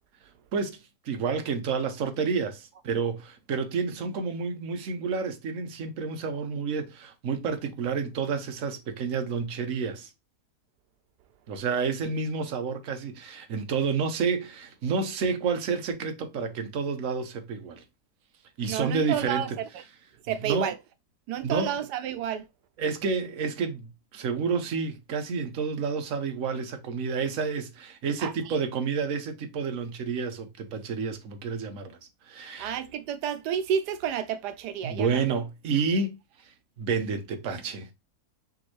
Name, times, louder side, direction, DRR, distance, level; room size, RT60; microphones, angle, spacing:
voice 1, 1.0-10.1 11.5-17.8 18.6-19.6 20.4-20.7 21.4-21.7 22.8-32.0 32.3-32.8 34.8-36.2 36.8-37.9, right 5 dB, 60° right, 1.3 m, -29 dB
voice 2, 18.7-19.6 20.2-20.8 21.3-22.5 28.2-28.6 32.6-35.2, right 9 dB, 85° right, 1.2 m, -30 dB
5.3 x 3.2 x 3.0 m
omnidirectional pair, 1.7 m